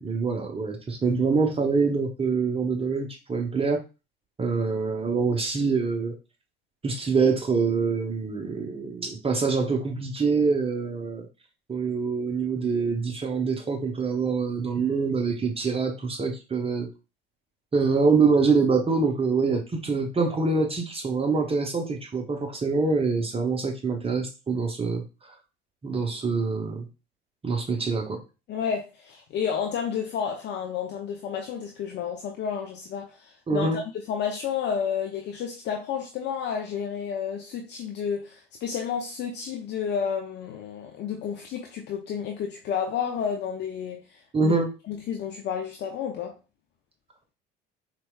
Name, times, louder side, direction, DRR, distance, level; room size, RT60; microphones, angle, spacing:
voice 1, 0.0-3.8 4.4-6.1 6.8-11.3 11.7-16.9 17.7-25.0 25.8-26.9 27.4-28.2 33.5-33.8 44.3-44.7, right 4 dB, 20° right, 0.6 m, -25 dB
voice 2, 28.5-33.8 34.1-44.6 44.9-46.4, left 7 dB, 40° left, 0.5 m, -31 dB
4.1 x 2.2 x 2.2 m
figure-of-eight pair, 65°, 29 cm